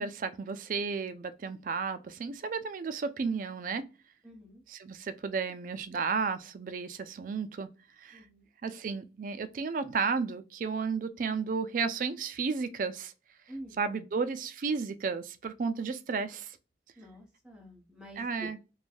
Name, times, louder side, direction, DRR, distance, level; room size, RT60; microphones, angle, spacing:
voice 1, 0.0-3.8 4.7-7.7 8.0-8.2 8.6-13.1 13.8-16.6 18.2-18.6, right 5 dB, 50° right, 0.3 m, -33 dB
voice 2, 4.2-4.6 8.1-8.5 13.5-13.8 17.0-18.5, equal, 5° right, 0.9 m, -47 dB
3.1 x 2.2 x 2.4 m
head